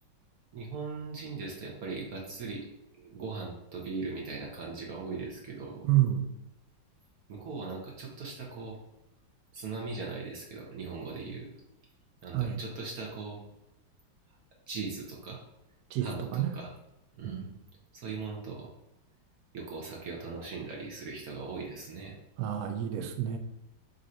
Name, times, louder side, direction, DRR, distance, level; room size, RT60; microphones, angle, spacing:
voice 1, 0.5-2.7 2.9-5.8 7.3-8.8 9.5-11.5 12.2-13.4 14.7-15.4 16.0-16.7 17.2-17.4 17.9-18.7 19.5-22.2, right 4 dB, 65° right, -2 dB, 1.0 m, -39 dB
voice 2, 5.9-6.3 12.3-12.6 15.9-16.5 17.2-17.5 22.4-23.4, right 12 dB, 90° right, 6 dB, 0.8 m, -29 dB
3.8 x 2.6 x 4.2 m, 0.90 s
omnidirectional pair, 2.1 m